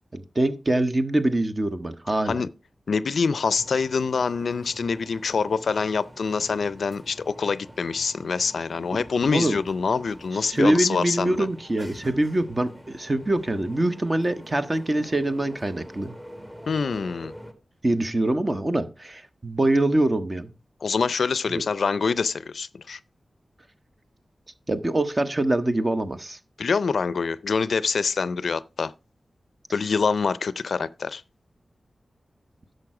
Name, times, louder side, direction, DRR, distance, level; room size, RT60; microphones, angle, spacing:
voice 1, 0.1-2.4 9.2-9.6 10.5-16.1 17.8-20.5 21.5-21.6 24.7-26.4, right 1 dB, 30° right, 1.0 m, -24 dB
voice 2, 2.9-11.5 16.7-17.3 20.8-23.0 26.6-28.9 29.7-31.2, left 5 dB, 80° left, 0.4 m, -25 dB
sound 1, 3.6-17.5, equal, 15° right, 1.7 m, -45 dB
10.5 x 6.6 x 4.8 m
wide cardioid pair, 80°, 0 cm